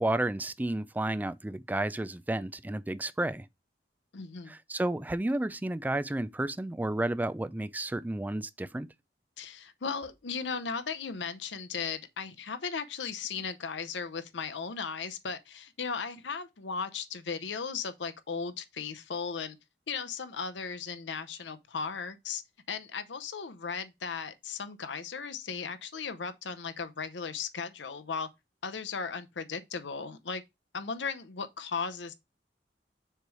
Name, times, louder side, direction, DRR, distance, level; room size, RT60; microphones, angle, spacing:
voice 1, 0.0-3.5 4.5-8.9, right 1 dB, 10° right, 0.3 m, -31 dB
voice 2, 4.1-4.5 9.4-19.6 19.9-22.4 22.7-28.3 28.6-30.4 30.7-32.2, left 5 dB, 80° left, 0.7 m, -36 dB
6.7 x 3.2 x 4.7 m
head